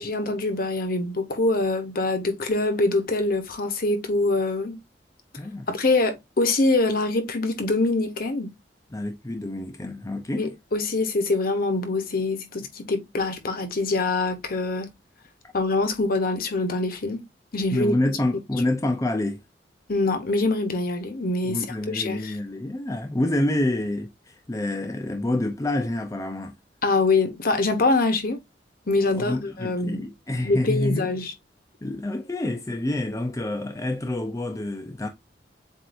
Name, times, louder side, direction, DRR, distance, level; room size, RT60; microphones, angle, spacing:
voice 1, 0.0-4.8 5.7-8.5 10.4-14.9 15.5-17.2 17.5-17.9 19.9-22.4 26.8-28.4 28.9-30.1 30.4-31.3, left 2 dB, 55° left, 1.0 m, -24 dB
voice 2, 5.4-5.7 8.9-10.5 17.7-19.4 21.4-26.5 29.1-31.1 31.8-35.1, left 1 dB, 20° left, 0.6 m, -27 dB
7.5 x 2.6 x 2.6 m
head